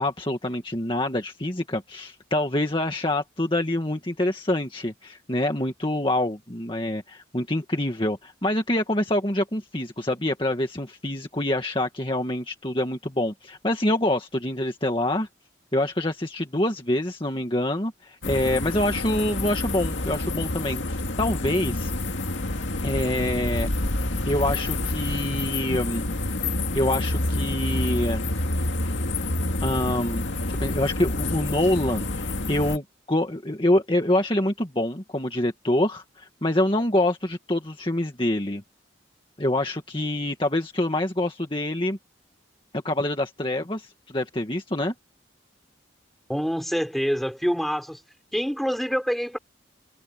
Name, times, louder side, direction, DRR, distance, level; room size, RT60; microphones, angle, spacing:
voice 1, 0.0-15.3 15.7-21.9 22.8-23.7 24.2-26.0 26.7-28.2 29.6-30.2 30.6-38.6 39.4-42.0 42.7-44.9, left 1 dB, 25° left, 2.0 m, -26 dB
sound 1, 18.2-32.8, left 2 dB, 75° left, 2.2 m, -28 dB
voice 2, 46.3-48.0 48.3-49.4, equal, ahead, 4.9 m, -26 dB
head